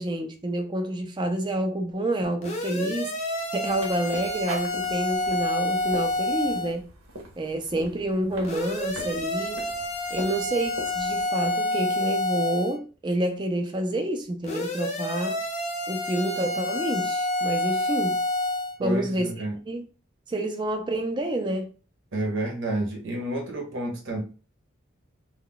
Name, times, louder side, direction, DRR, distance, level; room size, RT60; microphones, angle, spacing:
voice 1, 0.0-6.9 7.4-9.6 10.1-15.4 15.9-18.2 18.8-19.3 19.7-19.8 20.3-21.7, right 1 dB, 20° right, 0.4 m, -28 dB
sound 1, 2.4-6.7 8.4-12.8 14.4-18.7, left 1 dB, 30° left, 0.5 m, -28 dB
sound 2, 3.6-11.2, right 1 dB, 85° right, 0.9 m, -42 dB
voice 2, 18.8-19.6 22.1-24.2, right 1 dB, 60° right, 0.8 m, -30 dB
2.2 x 2.2 x 3.7 m
head